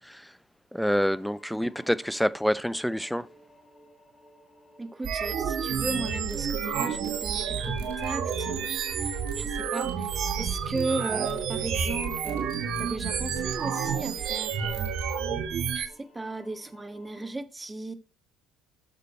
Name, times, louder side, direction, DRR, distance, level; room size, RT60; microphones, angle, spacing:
voice 1, 0.7-3.3, equal, ahead, 0.6 m, -26 dB
sound 1, 0.8-17.3, left 1 dB, 35° left, 5.9 m, -55 dB
voice 2, 1.5-2.0 4.8-12.5 12.8-14.9 15.7-17.9, right 2 dB, 20° right, 1.4 m, -36 dB
sound 2, 5.0-15.9, right 7 dB, 55° right, 1.3 m, -30 dB
sound 3, 5.4-15.2, equal, 85° right, 2.1 m, -43 dB
9.3 x 6.8 x 4.3 m
hypercardioid pair, 65°, 0 cm